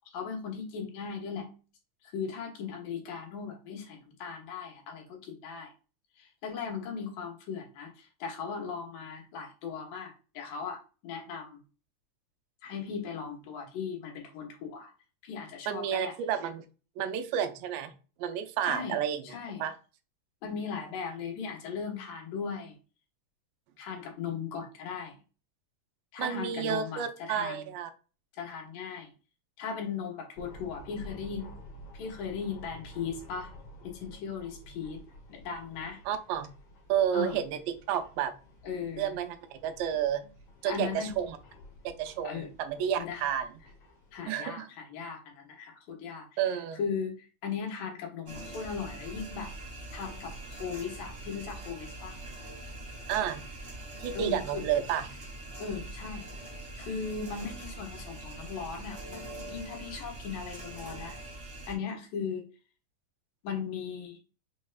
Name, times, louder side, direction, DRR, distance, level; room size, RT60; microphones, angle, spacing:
voice 1, 0.1-1.5 2.0-5.7 6.2-11.6 12.6-14.9 15.2-16.1 18.6-19.0 19.2-19.6 20.4-22.8 23.8-25.2 26.1-27.6 28.3-29.1 29.6-31.5 31.9-33.5 33.8-35.0 35.3-36.0 37.1-37.4 38.6-39.2 40.7-41.1 42.2-42.5 43.0-43.3 44.1-46.4 46.8-49.5 49.9-52.2 54.1-54.6 55.6-56.2 56.8-61.2 61.7-62.4 63.4-64.2, left 6 dB, 85° left, 1 dB, 2.7 m, -38 dB
voice 2, 15.7-16.6 17.0-17.9 18.2-19.2 19.6-19.7 26.2-27.9 36.1-36.5 36.9-38.3 39.0-40.2 40.6-41.4 41.8-43.5 44.3-44.7 46.4-46.8 53.1-53.4 54.0-55.1, right 9 dB, 90° right, 9 dB, 2.3 m, -31 dB
sound 1, 30.4-44.3, left 1 dB, 55° left, 1.5 m, -51 dB
sound 2, 48.3-61.7, right 2 dB, 40° right, 1.0 m, -43 dB
5.8 x 3.2 x 2.3 m, 0.35 s
omnidirectional pair, 3.9 m